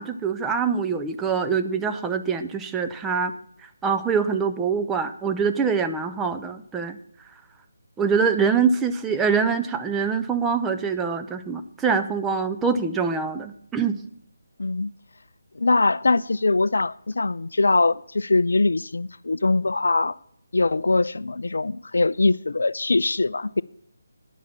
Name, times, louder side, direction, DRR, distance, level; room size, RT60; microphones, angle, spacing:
voice 1, 0.0-3.3 3.8-7.0 8.0-14.0, right 5 dB, 10° right, 0.6 m, -24 dB
voice 2, 14.6-14.9 15.6-20.2 20.5-23.6, left 3 dB, 65° left, 0.3 m, -22 dB
10.0 x 7.2 x 7.1 m
figure-of-eight pair, 150°, 0 cm